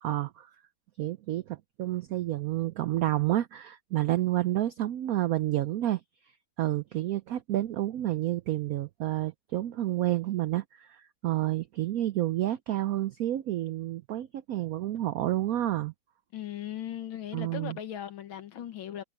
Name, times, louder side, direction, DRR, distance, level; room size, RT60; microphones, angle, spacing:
voice 1, 0.0-0.5 1.0-6.0 6.6-15.9 17.3-17.8, right 14 dB, 90° right, 0.7 m, -29 dB
voice 2, 16.3-19.0, left 10 dB, 85° left, 2.1 m, -38 dB
omnidirectional pair, 2.1 m